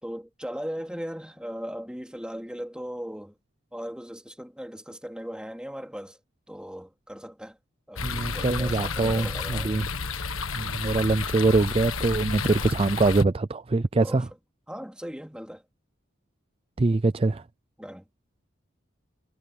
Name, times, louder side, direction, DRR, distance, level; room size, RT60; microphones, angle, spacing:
voice 1, 0.0-3.3 3.7-6.2 6.5-7.6 7.9-9.8 14.0-14.2 14.7-15.6 17.8-18.0, equal, 5° right, 2.7 m, -38 dB
sound 1, 8.0-13.2, left 4 dB, 90° left, 1.6 m, -31 dB
voice 2, 8.0-9.9 10.6-14.3 16.8-17.4, right 3 dB, 30° right, 0.4 m, -24 dB
head